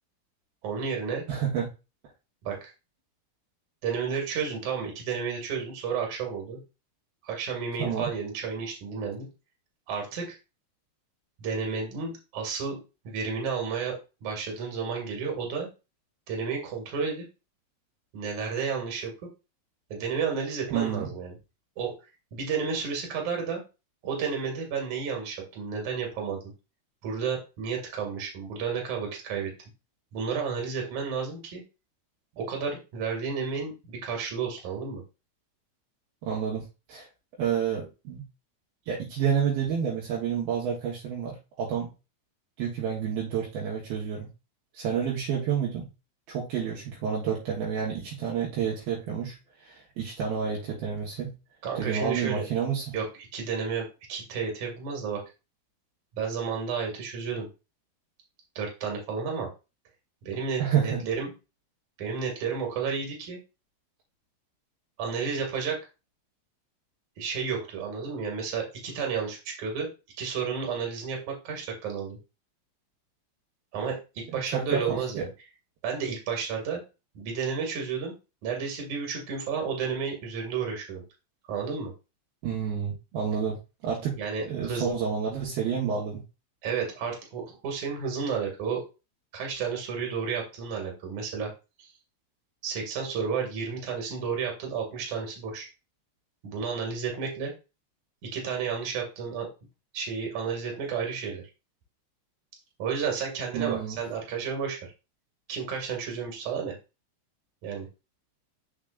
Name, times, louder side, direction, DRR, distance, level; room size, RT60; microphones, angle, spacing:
voice 1, 0.6-1.2 2.4-2.7 3.8-6.6 7.2-9.3 9.9-10.4 11.4-12.8 13.0-15.7 16.3-17.3 18.1-19.1 19.9-21.3 21.8-21.9 22.3-23.6 24.0-26.4 27.0-29.5 30.1-31.6 32.4-35.0 51.6-52.4 52.9-53.0 53.3-55.2 56.1-57.5 58.6-59.5 60.2-61.3 62.0-63.4 65.0-65.8 67.2-69.9 70.2-72.2 73.7-75.3 75.8-76.8 77.1-78.1 78.4-81.0 81.5-81.9 84.2-84.9 86.6-88.8 89.3-91.5 91.8-91.9 92.6-95.7 96.4-97.5 98.3-99.5 99.9-101.4 102.8-104.8 105.5-106.8 107.6-107.9, right 6 dB, 55° right, 1 dB, 3.2 m, -31 dB
voice 2, 1.3-1.7 7.8-8.1 20.7-21.1 36.2-37.1 37.4-38.2 38.9-41.9 42.6-44.3 44.7-45.9 46.3-49.4 49.6-51.3 51.8-52.9 60.6-61.0 74.5-75.3 82.4-84.2 84.4-86.2 103.5-104.0, right 7 dB, 70° right, -3 dB, 3.0 m, -29 dB
7.3 x 6.4 x 2.5 m, 0.28 s
omnidirectional pair, 4.5 m